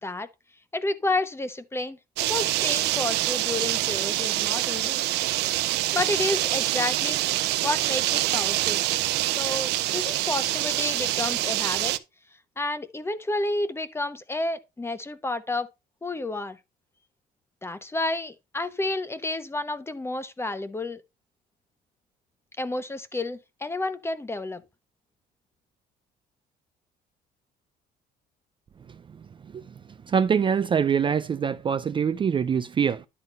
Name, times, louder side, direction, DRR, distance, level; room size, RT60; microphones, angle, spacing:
voice 1, 0.7-5.0 5.9-7.2 7.6-8.8 9.4-11.9 12.6-15.7 16.0-16.6 17.6-21.0 22.6-24.6, left 2 dB, 15° left, 1.0 m, -30 dB
sound 1, 2.2-12.0, right 16 dB, 85° right, 0.7 m, -25 dB
voice 2, 29.4-29.7 30.0-33.1, right 7 dB, 30° right, 0.4 m, -24 dB
11.0 x 3.7 x 5.3 m
cardioid pair, 110°, 17 cm